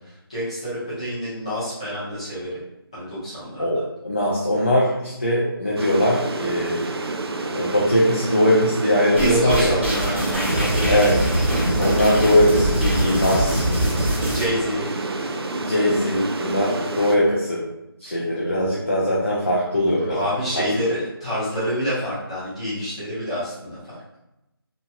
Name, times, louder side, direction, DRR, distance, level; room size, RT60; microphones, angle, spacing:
voice 1, 0.3-2.5 2.9-3.8 9.2-11.0 14.3-15.0 18.0-18.2 20.1-23.9, equal, 15° left, -11 dB, 0.7 m, -28 dB
voice 2, 3.6-6.8 7.5-9.8 10.9-11.2 11.8-13.6 15.7-17.7 18.0-20.2 20.5-20.7, equal, 30° left, -6 dB, 0.4 m, -20 dB
sound 1, 5.8-17.2, right 3 dB, 80° right, 0.4 m, -29 dB
sound 2, 9.2-14.5, equal, 30° right, 0.5 m, -23 dB
2.8 x 2.5 x 2.2 m, 0.92 s
figure-of-eight pair, 175°, 13 cm